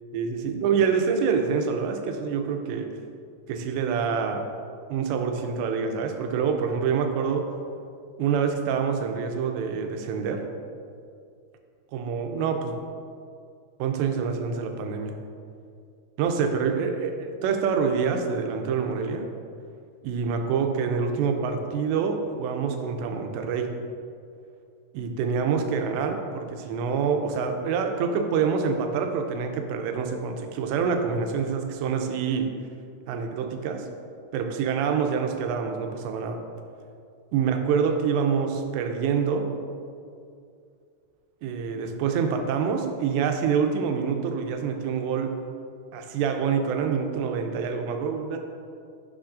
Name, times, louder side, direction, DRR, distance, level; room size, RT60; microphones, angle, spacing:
voice 1, 0.1-2.9 3.5-4.5 4.9-7.5 8.2-10.4 11.9-12.8 13.8-15.1 16.2-19.3 20.0-23.7 24.9-32.5 33.1-33.9 34.3-36.4 37.3-39.5 41.4-45.4 45.9-48.4, right 6 dB, 90° right, 5 dB, 2.8 m, -26 dB
9.6 x 6.5 x 2.5 m, 2.4 s
omnidirectional pair, 5.0 m